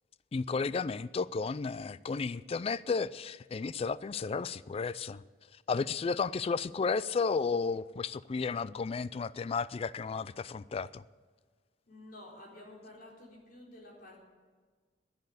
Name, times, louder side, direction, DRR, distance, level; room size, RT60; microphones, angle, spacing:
voice 1, 0.3-5.2 5.7-11.0, left 4 dB, 35° left, 18 dB, 0.3 m, -33 dB
voice 2, 11.9-14.2, left 1 dB, 55° left, -3 dB, 4.1 m, -51 dB
10.5 x 9.6 x 8.1 m, 1.5 s
head